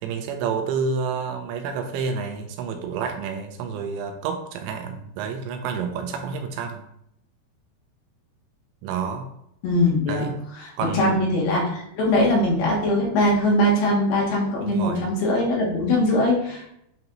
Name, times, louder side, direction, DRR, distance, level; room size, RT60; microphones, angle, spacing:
voice 1, 0.0-6.8 8.8-9.3 10.1-10.3 10.8-11.2 14.6-15.1, right 6 dB, 85° right, 5 dB, 2.9 m, -29 dB
voice 2, 9.6-10.3 10.6-16.7, left 1 dB, 70° left, -3 dB, 3.1 m, -21 dB
8.9 x 4.0 x 2.9 m, 0.74 s
omnidirectional pair, 5.2 m